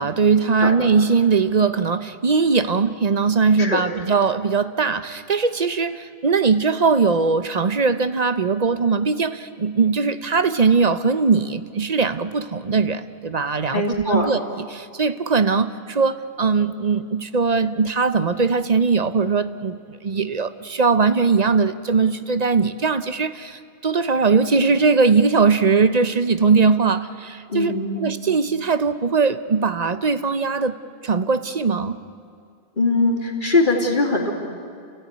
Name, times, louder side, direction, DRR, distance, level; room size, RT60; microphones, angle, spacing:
voice 1, 0.0-30.8 31.0-32.0, right 4 dB, 45° right, 12 dB, 0.9 m, -20 dB
voice 2, 13.7-14.3 27.5-28.0 32.8-34.3, left 2 dB, 55° left, 0 dB, 3.3 m, -21 dB
28.5 x 16.5 x 9.7 m, 2.3 s
omnidirectional pair, 1.0 m